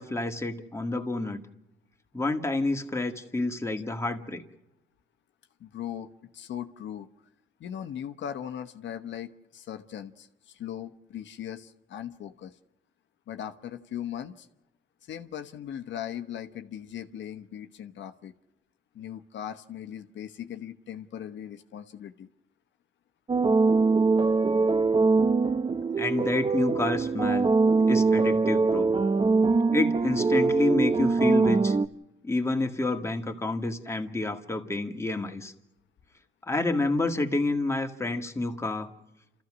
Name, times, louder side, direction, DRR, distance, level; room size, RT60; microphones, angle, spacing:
voice 1, 0.0-1.4 2.1-4.4 26.0-27.5 27.9-28.9 29.7-31.8 32.2-35.5 36.5-38.9, left 2 dB, 15° left, 4 dB, 1.9 m, -29 dB
voice 2, 5.6-7.1 7.6-12.6 13.3-14.5 15.0-18.3 18.9-22.3, left 10 dB, 65° left, 7 dB, 1.1 m, -39 dB
sound 1, 23.3-31.9, right 4 dB, 25° right, 0.8 m, -23 dB
30.0 x 14.0 x 6.3 m, 0.91 s
cardioid pair, 90°, 20 cm